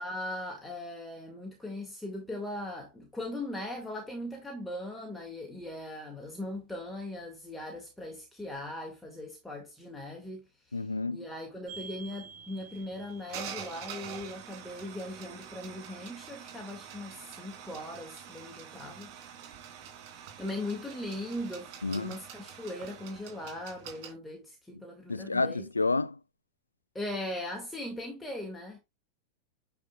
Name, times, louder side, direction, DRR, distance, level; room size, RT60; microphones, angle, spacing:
voice 1, 0.0-10.8 11.1-19.1 20.1-25.7 26.9-28.8, left 1 dB, 5° left, 1.9 m, -39 dB
voice 2, 10.7-11.2 21.8-22.1 24.7-24.8 25.1-26.2, left 3 dB, 80° left, 0.4 m, -30 dB
sound 1, 11.7-24.1, right 8 dB, 45° right, 3.2 m, -46 dB
9.2 x 5.0 x 2.3 m
figure-of-eight pair, 90°, 0 cm